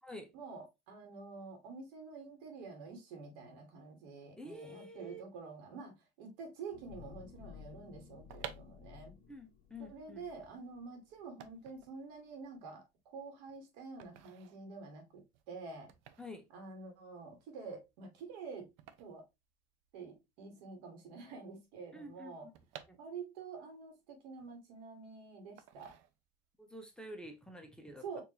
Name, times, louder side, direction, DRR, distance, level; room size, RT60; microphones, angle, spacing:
voice 1, 0.3-9.1 9.8-15.9 16.5-18.7 19.0-19.2 19.9-22.5 23.0-25.9 28.0-28.2, right 4 dB, 85° right, 1.5 m, -48 dB
voice 2, 4.4-5.2 9.3-10.2 16.2-16.4 21.9-22.5 22.9-23.0 26.6-28.2, left 1 dB, 5° left, 0.6 m, -49 dB
sound 1, 6.7-11.2 11.7-11.8, left 8 dB, 50° left, 1.2 m, -55 dB
sound 2, 8.0-20.2 20.4-20.5 20.7-23.6 24.0-25.0 25.6-26.6 26.9-27.2, right 10 dB, 70° right, 0.6 m, -54 dB
4.4 x 2.6 x 2.7 m
supercardioid pair, 120°, 21 cm